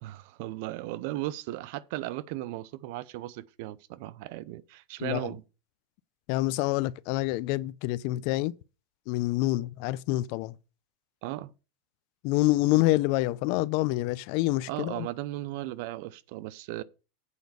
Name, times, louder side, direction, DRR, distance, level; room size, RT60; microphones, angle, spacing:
voice 1, 0.0-5.4 11.2-11.5 14.7-16.8, right 16 dB, 60° right, 0.6 m, -36 dB
voice 2, 5.0-5.3 6.3-8.5 9.1-10.6 12.2-15.1, left 18 dB, 55° left, 0.5 m, -27 dB
8.3 x 5.1 x 6.9 m
supercardioid pair, 140°, 0 cm